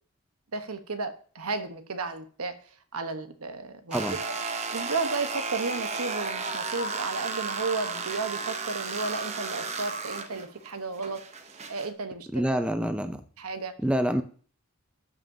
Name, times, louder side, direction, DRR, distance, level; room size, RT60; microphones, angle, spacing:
voice 1, 0.5-2.6 2.9-4.0 4.3-4.4 4.7-12.6 13.4-13.7, right 3 dB, 80° right, 9 dB, 1.1 m, -33 dB
sound 1, 3.9-11.9, right 4 dB, 30° right, 0.8 m, -34 dB
voice 2, 12.3-13.2 13.8-14.2, right 1 dB, 5° right, 8 dB, 0.5 m, -26 dB
13.0 x 5.6 x 2.7 m, 0.43 s
head